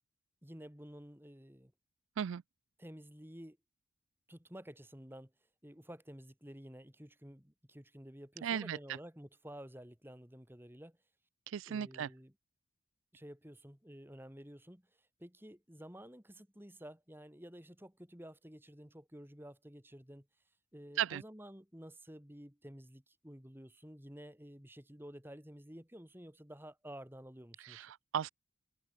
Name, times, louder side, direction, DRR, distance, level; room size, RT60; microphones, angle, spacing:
voice 1, 0.4-1.7 2.8-3.6 4.3-5.3 5.6-11.0 11.7-12.3 13.1-14.8 15.2-20.3 20.7-27.9, equal, 10° right, 2.2 m, -52 dB
voice 2, 8.4-8.8 11.5-12.1 21.0-21.2 27.6-28.3, right 9 dB, 75° right, 0.3 m, -36 dB
head